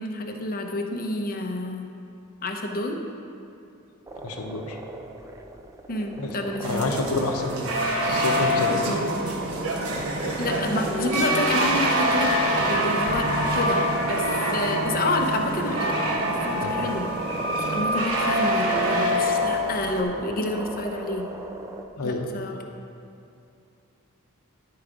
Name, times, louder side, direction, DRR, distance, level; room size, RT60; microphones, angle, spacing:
voice 1, 0.0-1.9 2.4-3.0 5.9-7.1 10.4-13.3 13.5-13.8 14.1-14.3 14.5-16.0 16.2-17.1 17.7-21.3 22.0-22.6, left 2 dB, 40° left, 3 dB, 0.8 m, -29 dB
sound 1, 4.1-21.9, right 2 dB, 15° right, 0.4 m, -38 dB
voice 2, 4.2-4.8 6.2-6.3 6.6-8.7 16.6-16.7 22.0-22.3, left 2 dB, 75° left, 3 dB, 0.8 m, -28 dB
sound 2, 6.6-20.0, equal, 75° right, 1.1 m, -25 dB
sound 3, 8.1-17.9, right 2 dB, 50° right, 0.7 m, -35 dB
11.0 x 4.7 x 4.9 m, 2.6 s
head